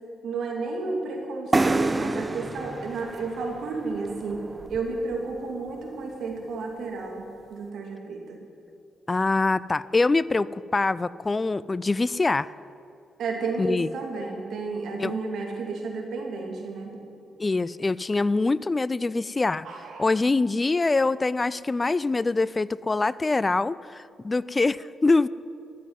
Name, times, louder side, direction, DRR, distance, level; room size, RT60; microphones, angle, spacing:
voice 1, 0.2-4.4 4.7-8.4 13.2-17.0 19.6-20.1, right 3 dB, 65° right, 1 dB, 2.7 m, -32 dB
sound 1, 1.5-5.2, right 2 dB, 30° right, 0.8 m, -28 dB
voice 2, 9.1-12.5 13.6-13.9 15.0-15.1 17.4-19.7 20.0-25.3, left 3 dB, 30° left, 19 dB, 0.3 m, -24 dB
14.0 x 7.6 x 9.4 m, 2.5 s
hypercardioid pair, 40°, 0 cm